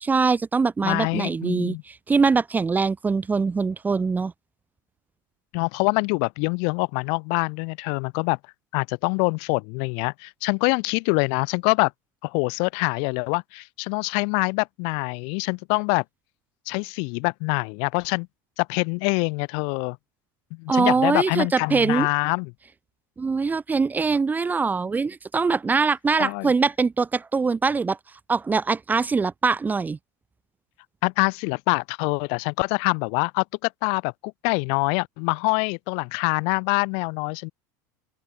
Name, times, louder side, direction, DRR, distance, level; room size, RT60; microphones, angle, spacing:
voice 1, 0.0-4.3 20.7-22.1 23.2-28.0 28.3-30.0, right 4 dB, 15° right, 1.2 m, -23 dB
voice 2, 0.8-1.8 5.5-8.4 8.7-11.9 12.2-16.0 16.7-18.3 18.6-20.0 20.5-22.5 26.2-26.5 31.0-37.5, left 39 dB, 65° left, 2.9 m, -25 dB
open air
supercardioid pair, 120°, 10 cm